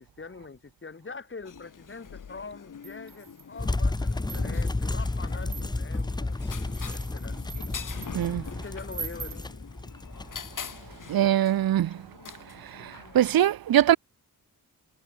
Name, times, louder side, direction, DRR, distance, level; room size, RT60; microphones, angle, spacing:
voice 1, 0.0-7.4 8.5-9.5, left 4 dB, 30° left, 5.3 m, -44 dB
sound 1, 1.5-13.5, left 7 dB, 55° left, 7.9 m, -45 dB
sound 2, 2.8-3.6 4.1-4.8 5.4-6.0 6.6-8.3 8.9-9.5, right 6 dB, 45° right, 2.4 m, -42 dB
sound 3, 3.6-11.2, left 2 dB, 10° left, 0.8 m, -31 dB
voice 2, 8.1-8.5 11.1-12.0 12.6-14.0, right 12 dB, 70° right, 0.8 m, -23 dB
wide cardioid pair, 110°, 37 cm